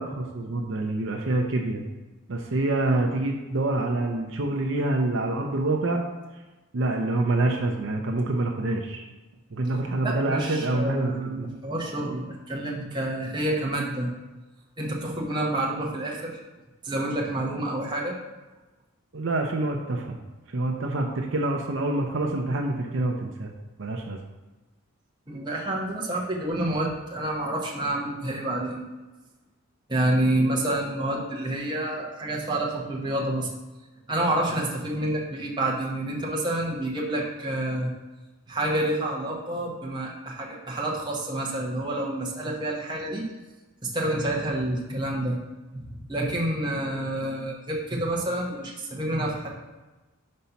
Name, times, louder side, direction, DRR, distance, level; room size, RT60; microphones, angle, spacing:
voice 1, 0.0-1.8 2.3-6.0 6.7-9.1 9.5-11.1 11.4-11.5 19.1-20.2 20.5-23.5 23.8-24.2 30.5-30.6, right 2 dB, 60° right, 2 dB, 0.6 m, -26 dB
voice 2, 10.0-14.1 14.8-16.4 16.8-18.2 25.3-28.8 29.9-33.5 34.1-37.9 38.5-43.2 43.8-45.4 45.7-49.5, right 1 dB, 20° right, -3 dB, 0.9 m, -28 dB
5.4 x 4.1 x 5.7 m, 1.1 s
head